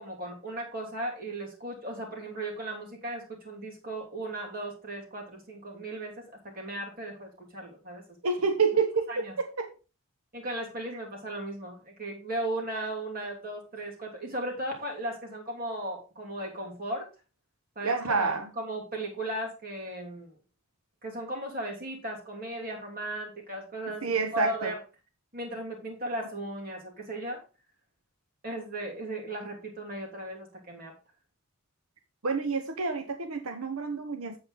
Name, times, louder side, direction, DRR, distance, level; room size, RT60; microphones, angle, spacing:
voice 1, 0.0-8.0 9.1-9.3 10.3-17.1 17.7-20.3 21.0-24.0 24.3-24.8 25.3-27.4 28.4-30.9, right 1 dB, 40° right, 0 dB, 3.1 m, -36 dB
voice 2, 8.2-9.7 17.8-18.5 23.9-24.7 32.2-34.4, right 4 dB, 85° right, 7 dB, 0.9 m, -28 dB
8.2 x 7.7 x 3.9 m, 0.31 s
head